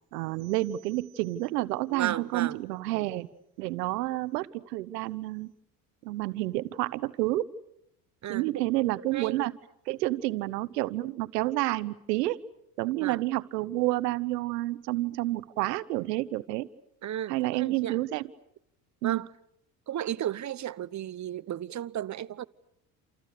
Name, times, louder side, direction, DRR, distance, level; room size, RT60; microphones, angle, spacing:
voice 1, 0.1-3.3 3.6-5.5 6.0-7.5 8.3-9.5 9.9-12.4 12.8-16.7 17.3-18.2 19.0-19.2, right 17 dB, 80° right, 1.1 m, -29 dB
voice 2, 1.9-2.6 8.2-9.4 12.9-13.2 17.0-18.0 19.0-19.3 19.9-22.4, right 11 dB, 35° right, 1.0 m, -34 dB
28.5 x 28.5 x 6.7 m
hypercardioid pair, 65°, 48 cm